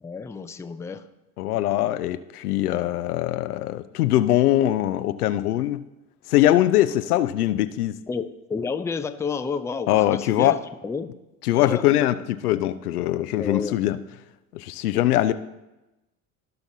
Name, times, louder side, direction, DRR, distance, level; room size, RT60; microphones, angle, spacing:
voice 1, 0.0-1.1 8.1-11.1 11.5-11.8 13.4-13.8, left 5 dB, 5° left, 9 dB, 0.4 m, -30 dB
voice 2, 1.4-5.8 6.3-7.9 9.9-10.6 11.5-12.1 12.4-14.0 14.5-15.3, left 14 dB, 85° left, 12 dB, 0.6 m, -22 dB
16.0 x 5.8 x 2.7 m, 0.99 s
hypercardioid pair, 75°, 44 cm